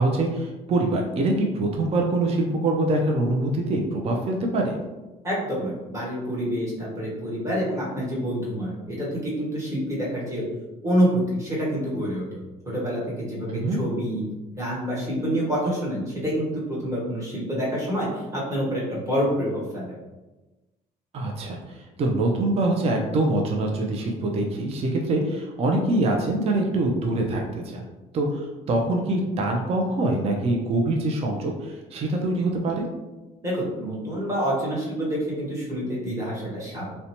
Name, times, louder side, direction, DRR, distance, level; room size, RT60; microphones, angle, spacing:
voice 1, 0.0-4.8 13.5-13.8 21.1-27.8 28.1-32.9, right 2 dB, 35° right, 1 dB, 0.4 m, -24 dB
voice 2, 5.2-10.4 10.8-14.2 14.5-19.9 33.4-36.9, equal, 20° right, -6 dB, 1.1 m, -27 dB
2.6 x 2.1 x 2.8 m, 1.1 s
cardioid pair, 110°, 17 cm